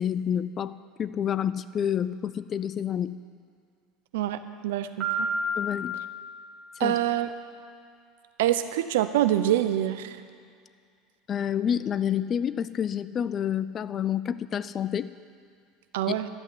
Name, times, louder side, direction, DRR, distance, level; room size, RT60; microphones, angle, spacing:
voice 1, 0.0-3.2 5.6-5.9 6.8-7.0 11.3-15.1 16.1-16.2, left 9 dB, 40° left, 15 dB, 0.5 m, -28 dB
voice 2, 4.1-5.3 6.8-7.3 8.4-10.2 15.9-16.3, right 12 dB, 70° right, 10 dB, 0.8 m, -26 dB
Piano, 5.0-6.9, equal, 30° right, 4.7 m, -31 dB
13.0 x 8.2 x 9.8 m, 2.2 s
hypercardioid pair, 75°, 0 cm